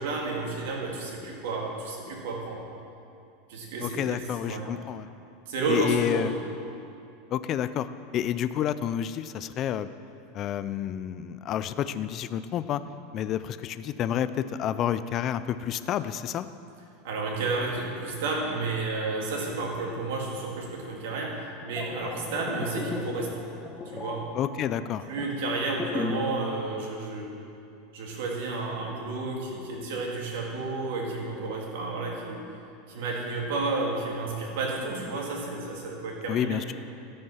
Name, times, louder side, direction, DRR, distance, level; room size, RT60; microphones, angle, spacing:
voice 1, 0.0-2.6 3.5-4.7 5.5-6.4 17.0-23.5 23.9-24.3 25.1-27.3 27.9-32.4 32.9-36.6, right 3 dB, 75° right, -1 dB, 2.2 m, -31 dB
voice 2, 3.8-5.1 5.7-6.3 7.3-7.9 8.1-9.9 10.3-12.8 13.1-16.5 24.3-25.0 36.3-36.7, left 10 dB, 35° left, 13 dB, 0.3 m, -29 dB
sound 1, 21.6-26.4 26.7-26.9, left 4 dB, 15° left, 0.7 m, -36 dB
13.0 x 5.5 x 5.6 m, 2.6 s
supercardioid pair, 150°, 0 cm